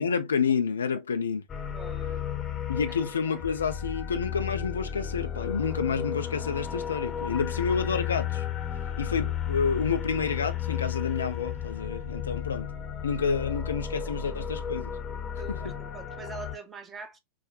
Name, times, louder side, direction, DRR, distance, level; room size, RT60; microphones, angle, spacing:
voice 1, 0.0-1.4 2.7-8.4 9.0-12.7 13.0-14.9 15.5-15.7, left 6 dB, 70° left, 0.6 m, -29 dB
sound 1, 1.5-16.6, left 9 dB, 30° left, 0.9 m, -33 dB
voice 2, 1.7-2.2 2.9-3.0 3.2-3.4 15.4-17.2, right 4 dB, 20° right, 0.9 m, -44 dB
6.0 x 2.2 x 2.8 m
figure-of-eight pair, 90°, 0 cm